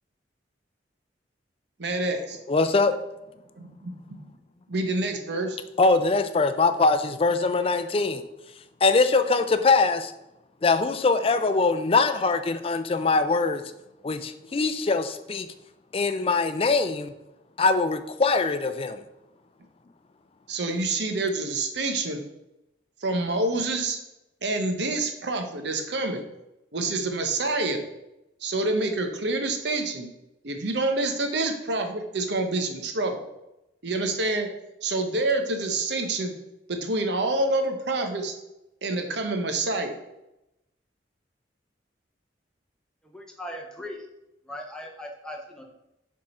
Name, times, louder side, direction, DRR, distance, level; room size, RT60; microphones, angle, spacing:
voice 1, 1.8-2.4 3.6-4.2 4.7-5.6 20.5-22.2 23.0-24.0 24.4-26.2 26.7-27.8 28.4-30.1 30.4-33.2 33.8-34.5 34.8-36.3 36.7-38.3 38.8-40.0, right 2 dB, 70° right, 5 dB, 0.9 m, -27 dB
voice 2, 2.5-2.9 5.8-8.2 8.8-10.1 10.6-13.6 14.0-15.5 15.9-17.1 17.6-19.0, left 3 dB, 30° left, 10 dB, 0.4 m, -22 dB
voice 3, 43.0-44.0 44.5-45.6, left 1 dB, 5° left, 1 dB, 0.8 m, -39 dB
6.4 x 3.7 x 4.3 m, 0.90 s
head